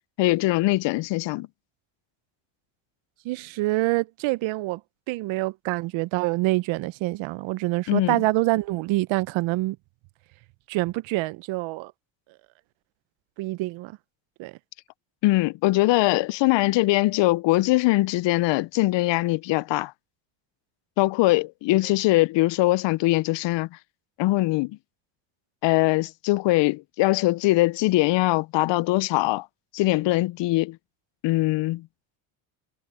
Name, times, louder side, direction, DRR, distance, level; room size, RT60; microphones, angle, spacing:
voice 1, 0.2-1.5 7.9-8.2 15.2-19.9 21.0-23.7 24.2-24.8 25.6-29.5 29.7-30.8 31.2-31.9, left 19 dB, 65° left, 0.7 m, -22 dB
voice 2, 3.3-4.8 5.1-9.8 10.7-11.9 13.4-13.9 14.4-14.5, right 19 dB, 70° right, 0.8 m, -26 dB
supercardioid pair, 85°, 48 cm